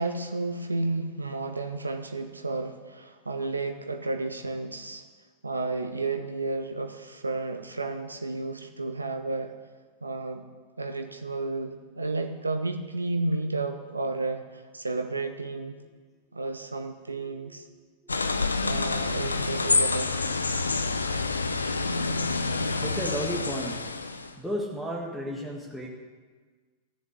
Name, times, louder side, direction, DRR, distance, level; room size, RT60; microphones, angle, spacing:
voice 1, 0.0-5.0 5.4-9.5 10.0-10.4 10.8-15.8 16.3-17.7 18.6-20.2, right 3 dB, 80° right, 7 dB, 0.7 m, -32 dB
sound 1, 18.1-24.3, left 3 dB, 80° left, 0.7 m, -27 dB
voice 2, 22.8-23.8 24.4-25.9, equal, ahead, -2 dB, 1.8 m, -33 dB
15.0 x 7.2 x 8.3 m, 1.4 s
figure-of-eight pair, 90°, 0 cm